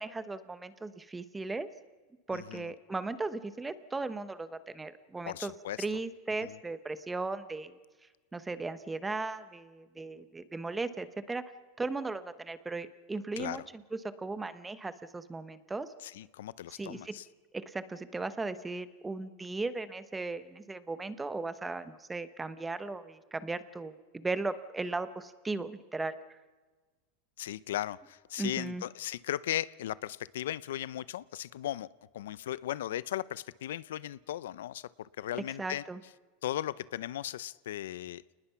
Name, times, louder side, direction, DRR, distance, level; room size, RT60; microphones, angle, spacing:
voice 1, 0.0-1.7 2.3-5.5 5.8-7.8 8.3-11.4 11.8-15.9 16.8-17.1 17.5-26.2 28.4-28.8 35.3-36.0, right 3 dB, 10° right, 13 dB, 1.0 m, -37 dB
voice 2, 2.3-2.6 5.3-5.8 6.4-6.5 13.4-13.6 16.0-17.3 27.4-31.9 32.1-35.8 36.4-38.2, left 12 dB, 90° left, 19 dB, 0.6 m, -37 dB
28.5 x 20.0 x 5.8 m, 1.3 s
supercardioid pair, 145°, 0 cm